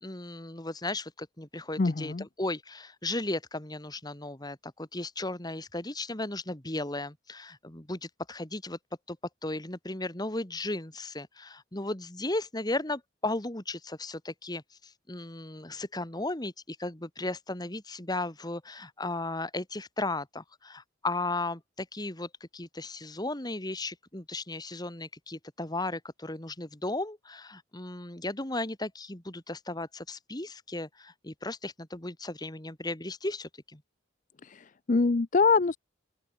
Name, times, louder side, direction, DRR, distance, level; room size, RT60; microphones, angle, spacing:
voice 1, 0.0-8.8 9.1-9.2 9.4-33.8, left 2 dB, 20° left, 2.0 m, -35 dB
voice 2, 1.8-2.2 34.4-35.8, left 4 dB, 40° left, 0.5 m, -25 dB
open air
head